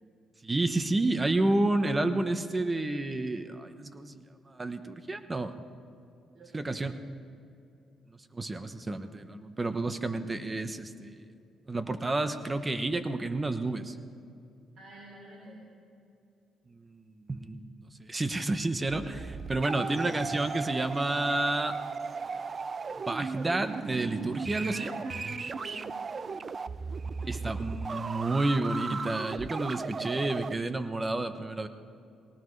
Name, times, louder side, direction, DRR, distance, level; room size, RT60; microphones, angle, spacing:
voice 1, 0.4-4.2 4.5-5.5 6.5-6.9 8.3-11.2 11.7-14.0 16.7-21.7 22.2-22.5 23.1-24.9 27.3-31.7, right 2 dB, 20° right, 10 dB, 1.0 m, -30 dB
voice 2, 6.3-6.8 14.7-15.6 19.8-19.9 24.6-26.8 27.2-28.1, equal, 70° right, -3 dB, 3.2 m, -49 dB
sound 1, 18.9-30.6, right 5 dB, 40° right, 0.3 m, -36 dB
19.5 x 18.5 x 3.3 m, 2.6 s
cardioid pair, 90°, 0 cm